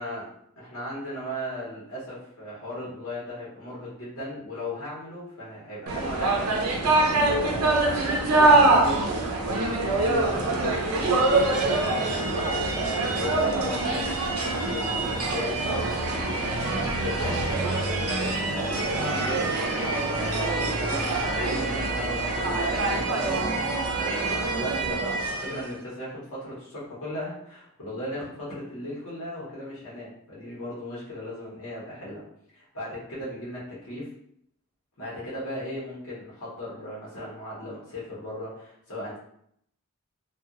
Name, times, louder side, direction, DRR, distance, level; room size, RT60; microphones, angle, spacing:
voice 1, 0.0-32.2 32.5-34.1 35.0-39.2, equal, 75° left, -7 dB, 1.0 m, -37 dB
sound 1, 5.9-25.7, right 2 dB, 85° right, 0.6 m, -25 dB
2.7 x 2.3 x 2.4 m, 0.70 s
head